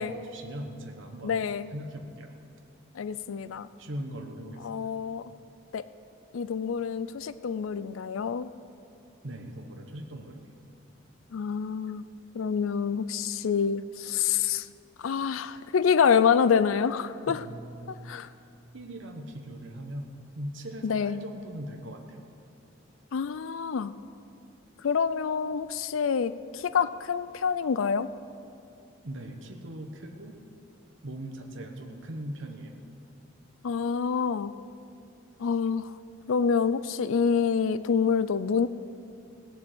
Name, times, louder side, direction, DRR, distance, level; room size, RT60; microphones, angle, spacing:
voice 1, 0.0-2.3 3.8-4.9 9.2-10.4 17.3-18.2 18.7-20.1 20.3-22.3 29.0-30.4 31.0-32.8, right 1 dB, 70° right, 3 dB, 1.1 m, -40 dB
voice 2, 1.2-1.7 3.0-3.7 4.6-5.2 5.7-5.8 6.3-8.5 11.3-12.1 12.3-14.6 15.0-17.4 18.1-18.3 20.8-21.2 23.1-23.9 24.8-28.1 33.6-34.5 35.4-35.9 36.3-38.7, left 6 dB, 85° left, 14 dB, 0.4 m, -27 dB
17.5 x 7.0 x 7.8 m, 2.6 s
head